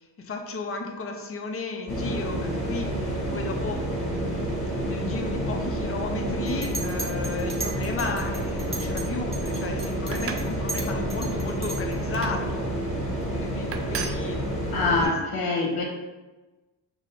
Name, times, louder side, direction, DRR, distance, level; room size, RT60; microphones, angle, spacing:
voice 1, 0.2-12.7 13.3-15.1 15.4-15.5, left 3 dB, 40° left, 2 dB, 0.7 m, -34 dB
sound 1, 1.9-15.1, right 1 dB, 20° left, 1.3 m, -29 dB
Chink clink, 6.5-9.1 9.3-12.0, right 3 dB, 15° right, 0.9 m, -37 dB
sound 2, 10.1-10.5 11.0-11.3 12.1-12.4 13.2-13.3 13.7-14.2, right 6 dB, 40° right, 0.4 m, -35 dB
voice 2, 14.7-15.8, left 3 dB, 85° left, -1 dB, 1.0 m, -24 dB
6.0 x 2.0 x 4.0 m, 1.1 s
cardioid pair, 125°, 36 cm